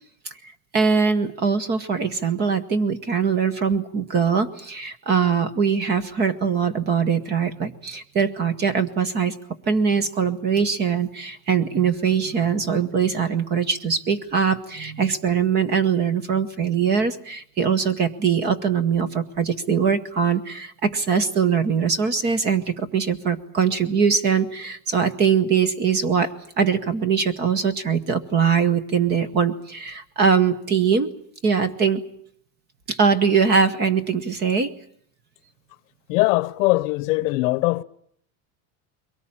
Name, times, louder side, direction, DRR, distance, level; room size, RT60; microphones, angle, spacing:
voice 1, 0.7-9.4 9.7-26.3 26.6-31.1 31.4-32.0 32.9-34.7, right 6 dB, 25° right, 0.9 m, -22 dB
voice 2, 36.1-37.8, left 21 dB, 60° left, 0.9 m, -21 dB
23.0 x 18.5 x 8.8 m
cardioid pair, 175°, 43 cm